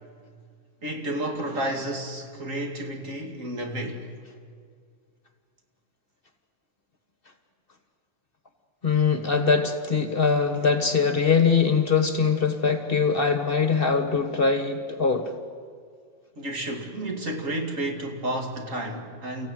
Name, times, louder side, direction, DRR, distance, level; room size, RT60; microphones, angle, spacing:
voice 1, 0.8-4.1 16.4-19.5, right 1 dB, 60° right, 3 dB, 3.0 m, -31 dB
voice 2, 8.8-15.3, left 5 dB, 40° left, 8 dB, 1.5 m, -22 dB
30.0 x 15.5 x 9.3 m, 2.1 s
omnidirectional pair, 1.6 m